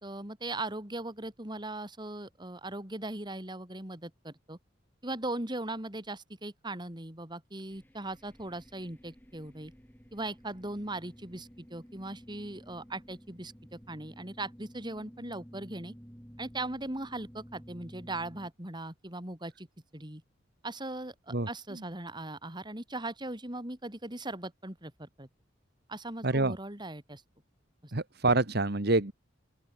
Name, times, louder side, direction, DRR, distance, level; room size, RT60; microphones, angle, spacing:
voice 1, 0.0-4.6 5.0-9.7 10.1-15.9 16.4-19.7 19.9-20.2 20.6-25.3 25.9-27.2 27.8-27.9, right 2 dB, 25° right, 3.6 m, -39 dB
sound 1, 7.7-18.5, equal, 10° left, 7.7 m, -53 dB
voice 2, 26.2-26.6 27.9-29.1, right 2 dB, 55° right, 1.7 m, -26 dB
open air
head